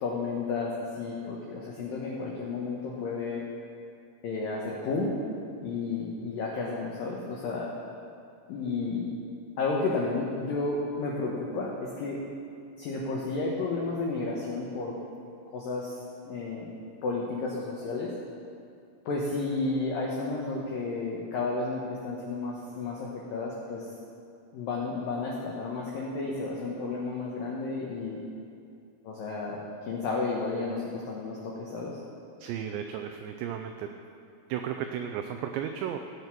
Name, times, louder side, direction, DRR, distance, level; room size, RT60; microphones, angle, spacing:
voice 1, 0.0-3.4 4.2-5.1 5.6-7.7 8.5-9.0 9.6-12.2 12.8-15.0 15.5-16.0 16.2-16.7 17.0-18.1 19.1-23.9 24.5-28.2 29.0-32.0, left 3 dB, 75° left, -3 dB, 2.0 m, -32 dB
voice 2, 32.4-33.9 34.5-36.0, right 9 dB, 90° right, 6 dB, 2.5 m, -34 dB
16.0 x 7.9 x 6.0 m, 2.4 s
omnidirectional pair, 5.8 m